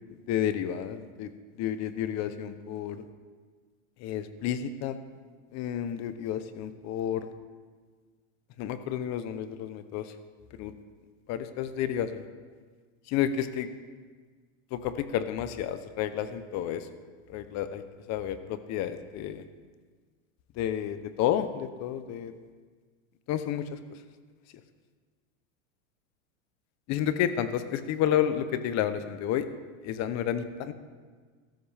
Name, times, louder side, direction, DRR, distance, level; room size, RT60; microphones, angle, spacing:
voice 1, 0.3-1.3 1.6-3.0 4.0-5.0 5.5-7.3 8.6-10.1 10.6-10.7 11.3-12.2 13.1-13.7 14.7-16.9 17.3-17.8 18.1-19.4 20.6-22.3 23.3-23.8 26.9-29.5 29.8-30.7, left 10 dB, 40° left, 11 dB, 0.9 m, -30 dB
15.0 x 13.0 x 3.5 m, 1.5 s
supercardioid pair, 130°, 41 cm